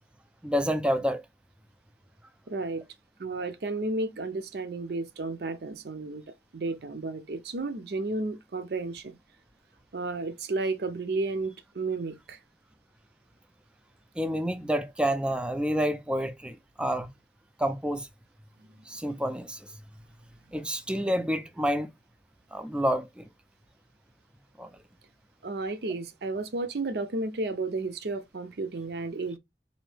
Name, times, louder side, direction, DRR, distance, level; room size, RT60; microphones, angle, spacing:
voice 1, 0.4-1.2 14.2-17.1 17.6-18.1 18.9-19.7 20.5-21.9 22.5-23.3 24.6-24.7, equal, 5° right, 0.3 m, -28 dB
voice 2, 2.5-2.8 3.2-6.2 6.5-9.1 9.9-12.4 25.4-29.4, right 3 dB, 65° right, 0.5 m, -32 dB
4.0 x 2.7 x 3.2 m
head